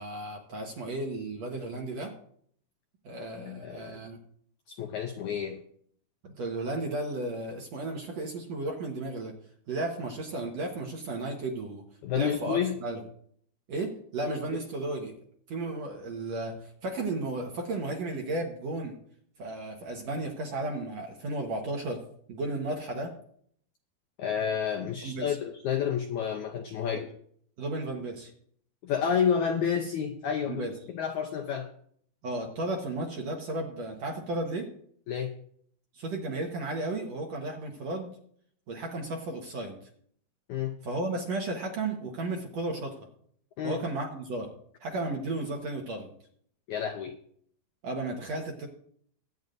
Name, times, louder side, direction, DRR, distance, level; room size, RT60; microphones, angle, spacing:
voice 1, 0.0-2.1 3.0-4.2 6.2-9.3 9.7-11.8 12.1-13.0 13.7-15.2 15.5-19.0 19.4-22.0 22.3-23.1 24.8-25.4 27.6-28.3 30.4-30.7 32.2-34.7 35.9-38.1 38.7-39.8 40.8-43.0 43.6-44.5 44.8-46.1 47.8-48.7, right 2 dB, 60° right, 1 dB, 2.0 m, -34 dB
voice 2, 3.4-4.0 4.7-5.6 12.0-12.8 24.2-27.1 28.8-31.7 35.1-35.4 40.5-40.7 43.6-43.8 46.7-47.2, left 8 dB, 80° left, 4 dB, 1.7 m, -30 dB
22.5 x 9.2 x 2.6 m, 0.63 s
omnidirectional pair, 4.4 m